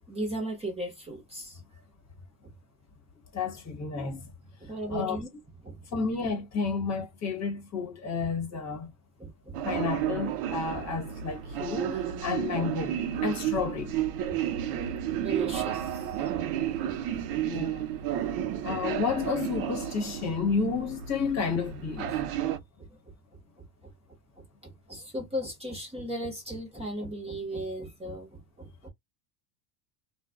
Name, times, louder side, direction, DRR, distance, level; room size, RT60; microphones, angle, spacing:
voice 1, 0.1-1.6 2.4-2.5 4.6-5.3 5.6-6.0 9.2-9.8 14.3-17.5 18.2-18.7 22.5-23.9 24.4-28.9, right 1 dB, 10° right, 1.0 m, -38 dB
voice 2, 3.3-4.3 4.9-5.2 5.9-8.9 9.6-14.0 17.4-17.9 18.6-22.2, left 5 dB, 30° left, 1.1 m, -31 dB
sound 1, 9.5-22.6, right 11 dB, 55° right, 0.7 m, -32 dB
2.4 x 2.4 x 2.2 m
supercardioid pair, 125°, 50 cm